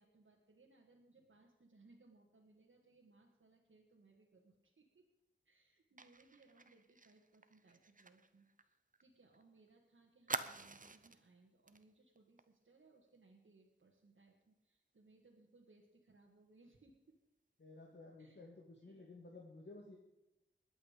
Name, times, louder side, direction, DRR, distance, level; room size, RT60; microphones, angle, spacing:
voice 1, 0.0-5.1 5.5-17.2 18.2-18.5 18.8-19.1, right 3 dB, 85° right, -2 dB, 1.9 m, -67 dB
Fire, 6.0-9.4 9.7-9.8 10.3-11.2 11.7-11.8 12.2-12.4, right 3 dB, 40° right, 0.9 m, -47 dB
voice 2, 17.6-20.0, left 2 dB, 65° left, 0 dB, 2.1 m, -55 dB
21.0 x 8.6 x 5.2 m, 0.95 s
wide cardioid pair, 65°, 20 cm